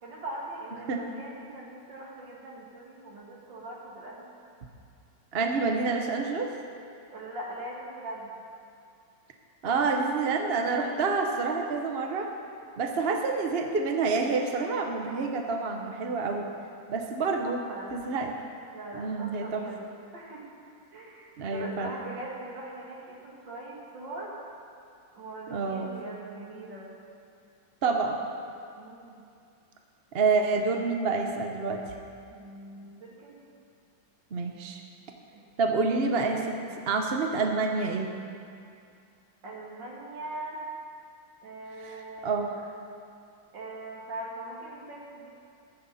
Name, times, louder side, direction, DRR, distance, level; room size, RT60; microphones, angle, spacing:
voice 1, 0.0-4.2 7.1-8.3 17.4-17.9 18.7-19.8 20.1-20.5 20.9-24.3 25.1-27.0 28.7-29.2 32.3-33.4 35.3-36.0 39.4-40.6 41.4-42.5 43.5-45.3, right 2 dB, 65° right, -3 dB, 2.8 m, -41 dB
voice 2, 5.3-6.5 9.6-12.3 12.8-16.5 16.9-17.6 17.9-18.4 18.9-19.6 21.4-21.9 25.5-25.9 27.8-28.2 30.1-31.8 34.3-34.8 35.6-36.6 36.9-38.1 41.8-42.0 42.2-42.6, right 4 dB, 45° right, 3 dB, 0.8 m, -28 dB
14.5 x 14.0 x 4.2 m, 2.4 s
omnidirectional pair, 2.2 m